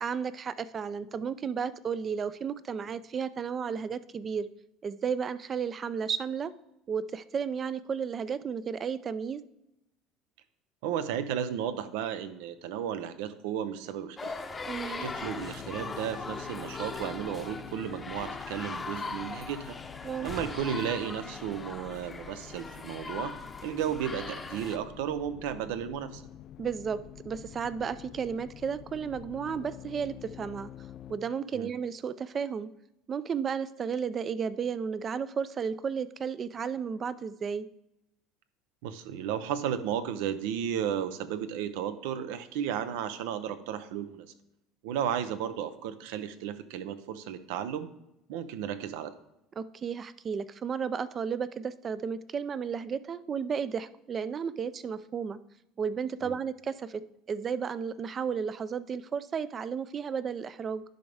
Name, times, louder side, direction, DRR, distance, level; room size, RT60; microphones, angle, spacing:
voice 1, 0.0-4.5 4.8-6.5 6.9-9.4 14.7-15.0 20.0-20.3 26.6-27.0 27.2-30.7 31.1-32.7 33.1-37.7 49.6-55.4 55.8-57.0 57.3-60.8, right 6 dB, 30° right, 16 dB, 0.4 m, -33 dB
voice 2, 10.8-14.3 14.8-19.8 20.2-23.4 23.6-26.2 31.5-31.7 38.8-44.3 44.8-47.9 48.3-49.1 56.2-56.4, right 9 dB, 80° right, 12 dB, 0.6 m, -34 dB
sound 1, 14.2-24.8, left 4 dB, 20° left, 0.7 m, -40 dB
sound 2, 15.0-31.2, left 11 dB, 50° left, 0.3 m, -48 dB
10.5 x 5.2 x 3.4 m, 0.86 s
supercardioid pair, 120°, 0 cm